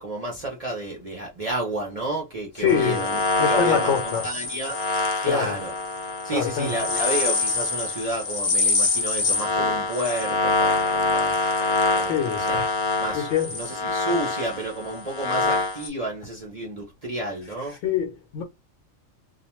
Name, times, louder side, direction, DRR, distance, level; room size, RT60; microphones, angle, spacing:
voice 1, 0.0-3.2 3.5-3.9 4.2-4.7 5.2-5.7 6.2-11.5 12.0-12.1 12.5-12.6 13.0-17.7, right 1 dB, 45° right, 0.5 m, -31 dB
voice 2, 2.6-3.1 3.4-4.3 5.2-5.6 6.3-6.8 12.0-12.6 13.1-13.6 17.6-18.4, left 7 dB, 70° left, 0.9 m, -25 dB
sound 1, 2.7-15.9, left 3 dB, 55° left, 0.4 m, -25 dB
2.4 x 2.1 x 2.9 m
omnidirectional pair, 1.4 m